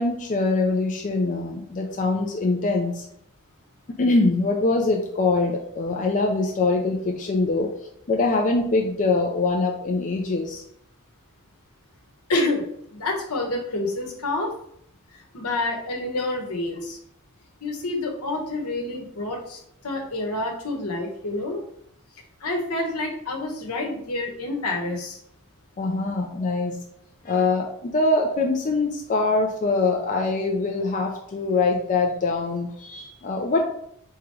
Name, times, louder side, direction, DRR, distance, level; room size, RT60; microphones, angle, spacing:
voice 1, 0.0-3.0 3.9-7.7 8.1-10.6 25.8-26.8 27.2-33.6, left 3 dB, 35° left, 1 dB, 0.4 m, -23 dB
voice 2, 12.3-14.5 15.3-17.0 17.6-21.6 22.4-25.2, left 2 dB, 75° left, 1 dB, 1.1 m, -28 dB
3.7 x 2.9 x 4.6 m, 0.71 s
head